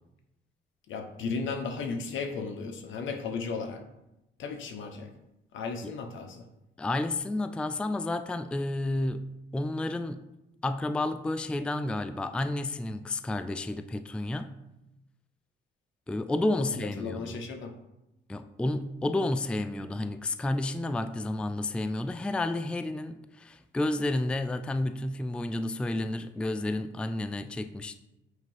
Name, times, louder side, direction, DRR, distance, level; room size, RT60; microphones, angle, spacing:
voice 1, 0.9-3.8 4.4-5.1 5.5-6.4 16.6-17.7, left 4 dB, 75° left, 1.0 m, -35 dB
voice 2, 6.8-10.2 10.6-14.5 16.1-17.4 18.3-28.0, left 2 dB, 5° left, 0.3 m, -31 dB
8.1 x 2.9 x 5.5 m
cardioid pair, 90°, 20 cm